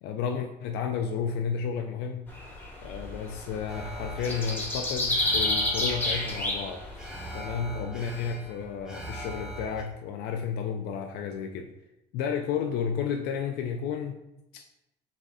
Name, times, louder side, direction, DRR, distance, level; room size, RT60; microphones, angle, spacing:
voice 1, 0.0-2.3 2.8-6.8 7.3-11.7 12.1-14.2 14.5-14.7, left 6 dB, 85° left, 4 dB, 0.4 m, -32 dB
sound 1, 2.3-7.2, left 1 dB, 10° left, 1.5 m, -29 dB
Alarm, 3.7-9.8, equal, 5° right, 1.0 m, -41 dB
4.1 x 3.7 x 3.5 m, 0.90 s
cardioid pair, 110°, 17 cm